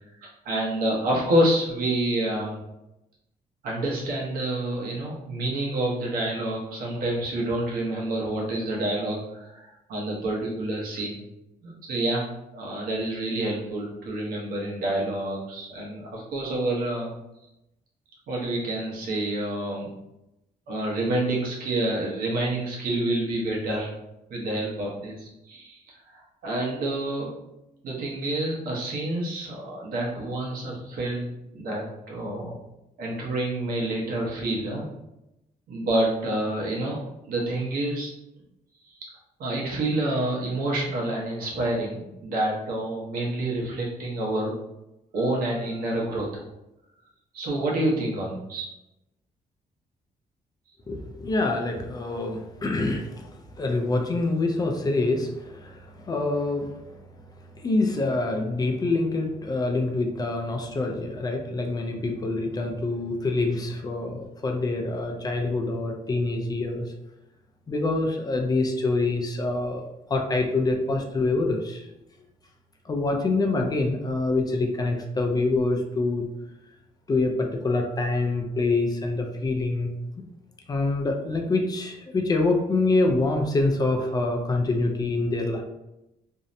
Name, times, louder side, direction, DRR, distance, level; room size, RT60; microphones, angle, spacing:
voice 1, 0.2-2.6 3.6-11.2 11.6-12.3 12.5-17.1 18.3-19.9 20.7-23.9 24.3-25.8 26.1-27.3 27.8-32.6 33.0-34.9 35.7-38.1 38.8-39.0 39.4-44.5 45.1-46.4 47.3-48.6, right 1 dB, 90° right, -3 dB, 0.8 m, -28 dB
voice 2, 50.9-56.8 57.6-66.9 67.7-71.9 72.9-76.3 77.1-79.9 80.7-85.6, left 2 dB, 25° left, 3 dB, 0.3 m, -26 dB
2.6 x 2.0 x 2.5 m, 0.89 s
cardioid pair, 135°, 15 cm